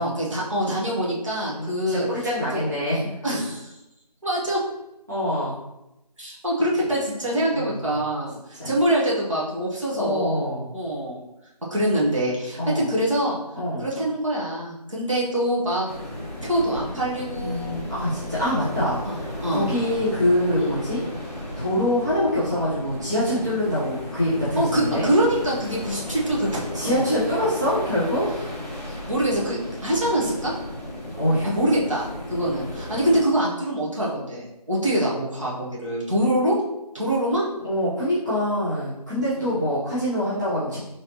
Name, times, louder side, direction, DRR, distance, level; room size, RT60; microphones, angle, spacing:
voice 1, 0.0-2.1 2.5-2.6 3.2-3.7 4.2-4.6 6.2-11.2 11.7-13.4 13.8-15.9 16.4-17.8 19.0-19.7 20.5-20.8 24.6-27.0 28.9-30.5 31.4-36.6 36.9-37.5 39.4-39.6, right 1 dB, 50° right, -5 dB, 1.2 m, -24 dB
voice 2, 1.5-3.1 5.1-5.6 7.5-7.7 8.6-8.7 9.9-10.6 12.6-12.8 13.5-13.8 17.4-21.0 21.6-25.1 26.7-28.3 31.2-31.5 37.6-40.8, left 1 dB, 25° right, -11 dB, 0.9 m, -25 dB
sound 1, 15.9-33.2, left 1 dB, 20° left, 1.0 m, -35 dB
4.0 x 3.1 x 2.9 m, 0.90 s
figure-of-eight pair, 175°, 21 cm